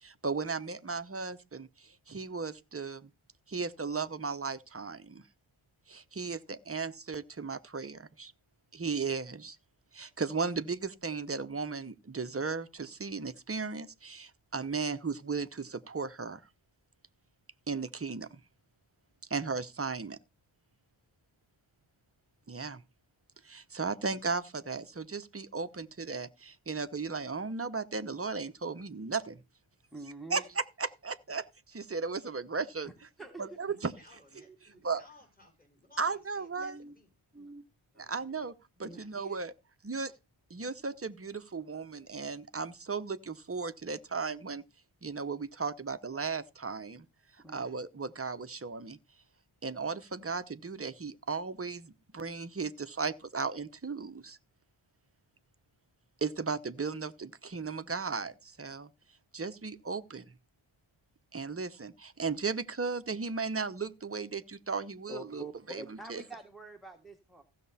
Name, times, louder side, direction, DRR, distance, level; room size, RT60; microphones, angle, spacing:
voice 1, 0.0-3.1 3.5-5.2 5.9-8.3 8.7-9.6 9.9-16.4 17.7-18.4 19.3-20.2 22.5-22.8 23.4-29.4 30.3-32.9 33.4-33.9 34.8-35.0 36.0-36.7 38.0-38.5 38.8-39.5 39.8-40.1 40.5-44.6 45.0-47.1 47.5-49.0 49.6-54.4 56.2-58.9 59.3-60.2 61.3-65.8 66.1-66.2, right 4 dB, 30° right, 0.9 m, -36 dB
voice 2, 29.9-30.5 32.8-32.9 33.2-33.6 34.5-34.6 36.6-36.9 37.3-37.6 38.8-39.0 47.4-47.7 65.1-67.4, right 2 dB, ahead, 1.5 m, -46 dB
voice 3, 33.7-37.1 37.9-38.5 38.9-39.4, left 2 dB, 15° left, 6.1 m, -59 dB
15.5 x 6.7 x 4.2 m
wide cardioid pair, 130°, 49 cm